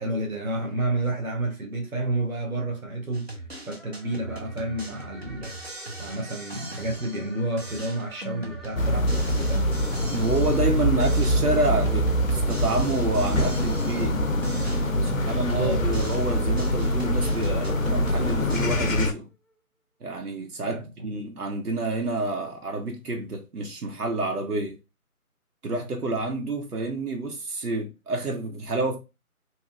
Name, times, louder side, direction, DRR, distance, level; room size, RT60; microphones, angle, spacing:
voice 1, 0.0-5.6 6.0-9.7 15.1-16.0 20.6-21.1, right 2 dB, 65° right, 1.1 m, -30 dB
sound 1, 3.1-7.3 7.6-10.7 11.0-14.2 14.4-18.6, right 1 dB, 45° right, 0.7 m, -40 dB
sound 2, 3.7-19.0, right 2 dB, ahead, 0.3 m, -45 dB
sound 3, 8.7-19.1, equal, 65° left, 0.6 m, -24 dB
voice 2, 10.1-14.2 15.0-19.3 20.0-24.8 25.6-29.0, right 2 dB, 90° right, 1.0 m, -28 dB
2.9 x 2.8 x 2.4 m
figure-of-eight pair, 180°, 44 cm